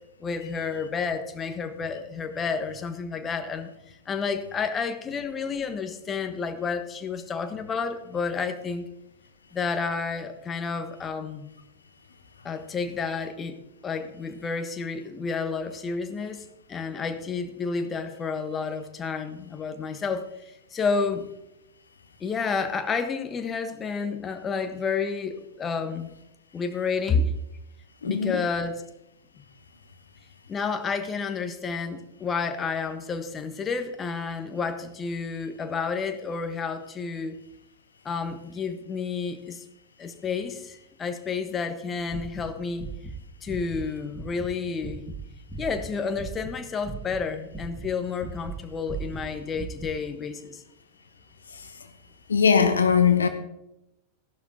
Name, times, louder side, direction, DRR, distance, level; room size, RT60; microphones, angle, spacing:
voice 1, 0.2-8.9 9.5-11.5 12.4-13.6 13.8-21.2 22.2-26.1 26.5-27.3 28.0-28.8 30.5-37.4 38.0-39.6 40.0-42.8 43.4-45.1 45.6-50.6, left 5 dB, 20° left, 7 dB, 1.3 m, -30 dB
voice 2, 28.0-28.4 51.5-51.7 52.3-53.3, left 6 dB, 70° left, 8 dB, 1.0 m, -21 dB
sound 1, 42.0-43.2 43.4-43.8 44.1-46.6 46.8-48.6 48.9-49.9, right 4 dB, 10° right, 2.2 m, -37 dB
15.0 x 11.5 x 2.9 m, 0.86 s
figure-of-eight pair, 90°, 0 cm